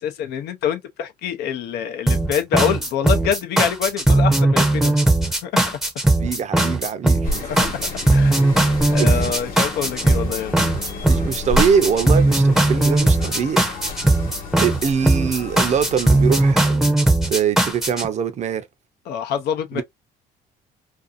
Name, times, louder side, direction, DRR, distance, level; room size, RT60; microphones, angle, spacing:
voice 1, 0.0-5.0 5.4-5.5 8.1-8.3 8.9-10.5 19.1-19.8, left 8 dB, 75° left, 0.6 m, -25 dB
sound 1, 2.1-18.1, right 2 dB, ahead, 0.6 m, -18 dB
voice 2, 6.2-7.4 9.0-9.3 11.1-13.6 14.6-16.9 17.3-18.6 19.7-19.8, right 7 dB, 45° right, 0.6 m, -23 dB
sound 2, 7.2-16.5, left 2 dB, 55° left, 1.1 m, -32 dB
2.6 x 2.4 x 2.4 m
cardioid pair, 110°, 17 cm